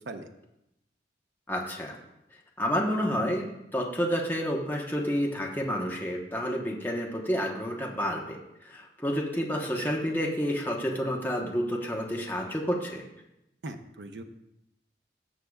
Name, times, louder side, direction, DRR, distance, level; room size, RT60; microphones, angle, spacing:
voice 1, 1.5-2.0 2.6-13.0, equal, 10° left, -1 dB, 1.0 m, -30 dB
voice 2, 13.6-14.2, right 2 dB, 85° right, 5 dB, 0.8 m, -39 dB
18.5 x 6.6 x 2.4 m, 0.88 s
head